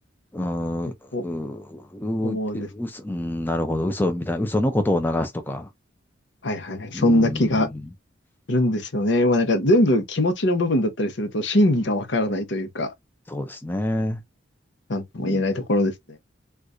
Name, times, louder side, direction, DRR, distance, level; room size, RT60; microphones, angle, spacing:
voice 1, 0.3-0.9 1.2-5.7 6.9-7.7 13.3-14.2 15.2-15.4, left 1 dB, 10° left, 0.4 m, -27 dB
voice 2, 2.2-2.7 6.4-7.7 8.5-12.9 14.9-16.2, left 1 dB, 70° left, 0.9 m, -22 dB
4.4 x 2.4 x 2.5 m
head